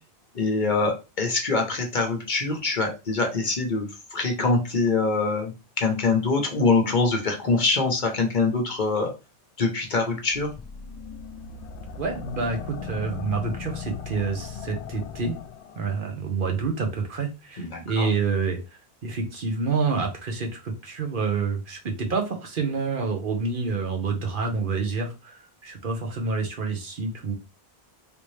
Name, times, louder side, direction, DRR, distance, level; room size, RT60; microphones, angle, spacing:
voice 1, 0.3-9.1 9.6-10.5 17.6-18.1, left 3 dB, 50° left, 3 dB, 0.9 m, -24 dB
sound 1, 10.3-15.9, left 6 dB, 90° left, 0.9 m, -38 dB
voice 2, 12.0-15.3 15.8-18.6 19.0-27.4, right 4 dB, 55° right, 3 dB, 0.9 m, -28 dB
3.4 x 2.7 x 3.1 m, 0.28 s
omnidirectional pair, 1.1 m